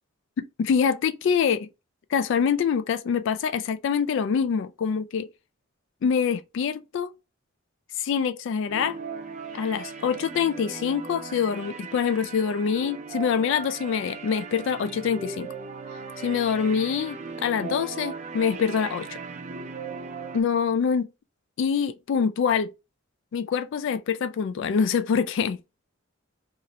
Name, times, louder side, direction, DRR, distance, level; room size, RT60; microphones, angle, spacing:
voice 1, 0.4-1.7 2.1-5.3 6.0-7.1 8.0-9.0 9.5-15.5 16.2-19.2 20.3-21.1 21.6-22.7 23.3-25.6, left 6 dB, 60° left, 0.3 m, -25 dB
sound 1, 8.7-20.4, right 5 dB, 35° right, 0.4 m, -38 dB
2.8 x 2.5 x 2.9 m
head